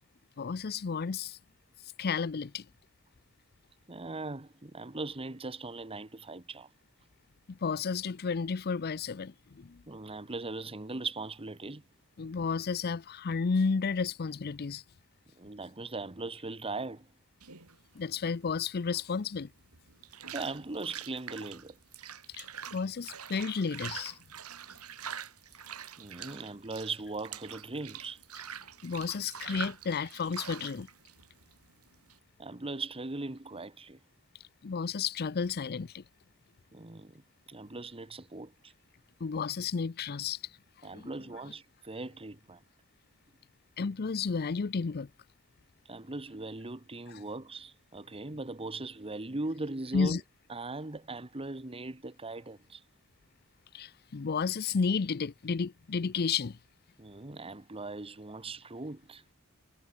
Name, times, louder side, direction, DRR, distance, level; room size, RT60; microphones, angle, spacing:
voice 1, 0.4-1.4 2.0-2.7 7.5-9.8 12.2-14.8 17.9-19.5 22.3-22.5 22.7-24.2 28.8-30.9 34.6-36.0 39.2-40.4 40.9-41.1 43.8-45.1 47.1-47.2 49.9-50.2 53.7-56.6, left 5 dB, 45° left, 0.5 m, -32 dB
voice 2, 3.9-6.7 9.9-11.8 15.4-17.1 20.3-21.8 26.0-28.2 32.4-34.0 36.7-37.2 37.5-38.7 40.8-42.6 45.9-50.2 50.5-52.8 57.0-59.2, right 3 dB, 25° right, 1.2 m, -39 dB
sound 1, 17.4-32.2, right 8 dB, 85° right, 7.0 m, -45 dB
head